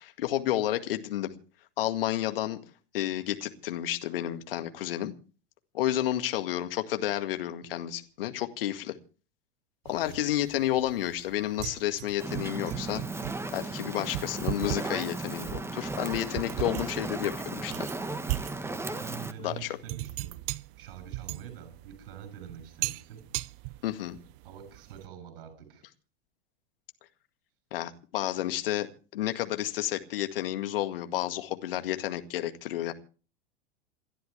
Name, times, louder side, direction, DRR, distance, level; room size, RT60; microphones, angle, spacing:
voice 1, 0.0-1.3 1.8-2.6 2.9-5.1 5.7-9.0 9.9-13.0 13.5-17.9 19.4-19.7 23.8-24.2 27.7-32.9, left 13 dB, 65° left, 2.0 m, -31 dB
sound 1, 9.9-25.1, right 18 dB, 45° right, 0.6 m, -39 dB
Fire, 12.2-19.3, right 2 dB, 10° right, 1.4 m, -36 dB
voice 2, 19.0-20.4 20.8-23.2 24.4-25.8, right 9 dB, 60° right, 7.7 m, -45 dB
28.0 x 11.5 x 3.4 m
figure-of-eight pair, 90°, 31 cm